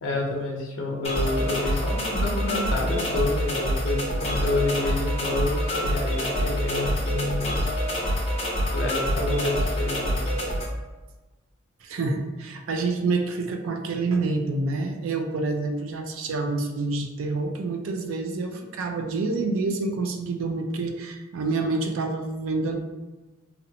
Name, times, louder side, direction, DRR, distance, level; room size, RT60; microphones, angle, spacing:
voice 1, 0.0-7.7 8.7-10.3, left 2 dB, 80° left, -1 dB, 0.5 m, -29 dB
sound 1, 1.0-10.6, equal, 30° left, 0.6 m, -26 dB
voice 2, 11.8-22.8, right 3 dB, 85° right, 5 dB, 0.4 m, -27 dB
2.6 x 2.1 x 2.8 m, 1.2 s
head